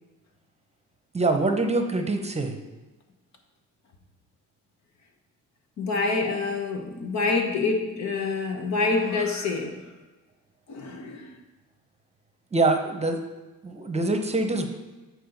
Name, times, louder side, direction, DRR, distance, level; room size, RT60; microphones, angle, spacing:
voice 1, 1.1-2.6 12.5-13.2 13.6-14.7, right 2 dB, 20° right, 5 dB, 0.8 m, -24 dB
voice 2, 5.8-9.8 10.7-11.3, left 3 dB, 65° left, 4 dB, 1.1 m, -26 dB
8.8 x 4.6 x 4.0 m, 1.2 s
cardioid pair, 90°, 30 cm